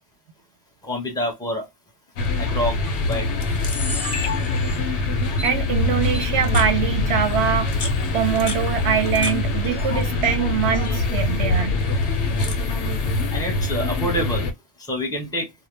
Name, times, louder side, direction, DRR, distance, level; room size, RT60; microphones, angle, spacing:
voice 1, 0.8-1.7 2.4-3.3 13.3-15.5, equal, 5° left, 0.7 m, -27 dB
sound 1, 2.2-14.5, left 2 dB, 70° left, 0.8 m, -23 dB
Camera, 2.2-2.5 3.1-3.2 3.4-5.0 5.4-5.5 6.1-6.7 7.5-9.3 9.6-10.4 10.6-11.0 11.8-12.7, left 4 dB, 40° left, 0.4 m, -33 dB
voice 2, 5.1-7.7 8.1-11.8, right 8 dB, 70° right, 0.8 m, -23 dB
2.1 x 2.0 x 3.0 m
omnidirectional pair, 1.2 m